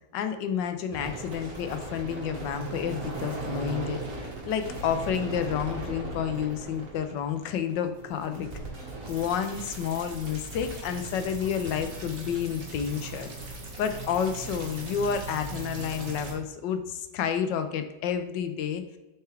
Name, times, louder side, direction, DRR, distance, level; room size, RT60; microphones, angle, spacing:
voice 1, 0.1-8.5 9.1-13.3 13.8-18.8, left 8 dB, 75° left, 8 dB, 1.3 m, -30 dB
sound 1, 0.9-16.3, right 3 dB, 45° right, 2.0 m, -38 dB
7.8 x 4.6 x 3.3 m, 1.1 s
omnidirectional pair, 2.0 m